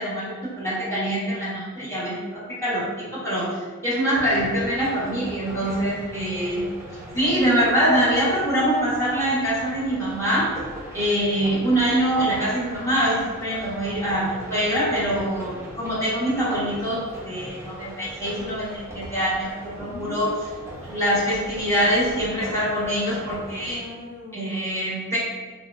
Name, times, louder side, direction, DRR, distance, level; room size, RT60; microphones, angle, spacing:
voice 1, 0.0-6.6 7.1-10.5 10.9-20.3 20.8-23.8 24.3-25.2, equal, 10° left, -8 dB, 1.1 m, -24 dB
sound 1, 4.1-23.7, right 1 dB, 10° right, 0.6 m, -39 dB
voice 2, 5.6-6.1 19.8-20.9 23.6-24.5, left 2 dB, 60° left, -9 dB, 0.8 m, -40 dB
2.7 x 2.3 x 2.2 m, 1.4 s
wide cardioid pair, 75°, 34 cm